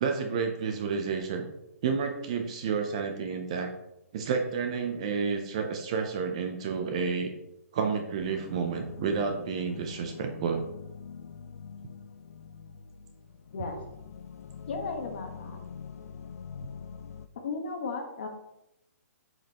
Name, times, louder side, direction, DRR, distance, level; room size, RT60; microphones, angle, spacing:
voice 1, 0.0-1.5 1.8-3.7 4.1-7.3 7.7-10.6, right 5 dB, 25° right, 5 dB, 0.5 m, -30 dB
sound 1, 8.2-17.3, left 6 dB, 70° left, 0.4 m, -44 dB
voice 2, 14.7-15.6 17.3-18.3, left 4 dB, 40° left, 4 dB, 1.1 m, -35 dB
7.4 x 5.2 x 2.9 m, 0.86 s
hypercardioid pair, 180°, 8 cm